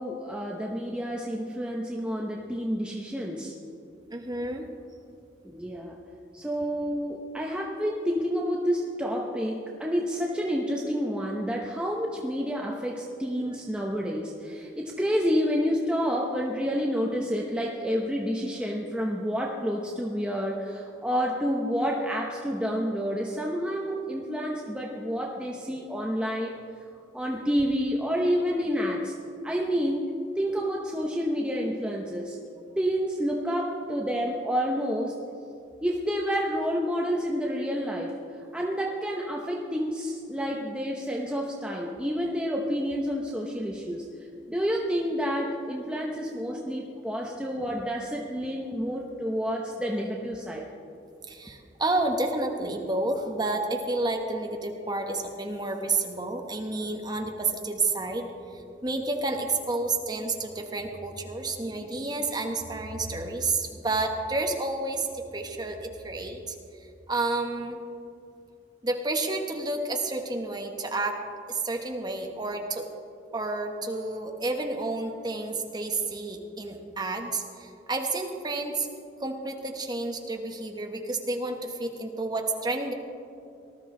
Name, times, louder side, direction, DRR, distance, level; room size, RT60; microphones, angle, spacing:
voice 1, 0.0-3.6 5.4-6.0 6.3-26.6 27.1-29.1 29.4-30.1 30.4-32.4 32.8-35.1 35.8-38.2 38.5-44.1 44.5-50.6, equal, 5° right, -2 dB, 0.8 m, -29 dB
voice 2, 4.1-4.6 13.4-13.6 51.3-67.8 68.8-71.2 71.5-72.8 73.3-78.9 79.2-82.9, right 2 dB, 20° right, 3 dB, 1.2 m, -30 dB
19.0 x 13.0 x 3.8 m, 2.6 s
head